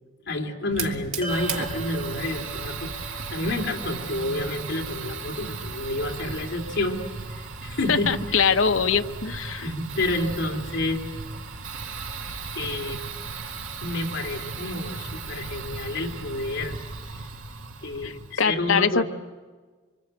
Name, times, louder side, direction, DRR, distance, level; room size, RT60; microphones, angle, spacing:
voice 1, 0.2-7.0 7.3-8.5 9.6-11.0 12.5-13.0 13.8-16.8 17.1-17.3 17.8-19.0, left 2 dB, 60° left, 0 dB, 3.3 m, -29 dB
Fire, 0.7-18.3, right 4 dB, 85° right, 2.1 m, -36 dB
sound 1, 1.2-5.7, right 2 dB, 30° left, 3.1 m, -40 dB
voice 2, 7.9-9.6 18.0-18.1 18.4-19.0, left 6 dB, 90° left, 7 dB, 1.0 m, -22 dB
25.0 x 25.0 x 8.3 m, 1.4 s
head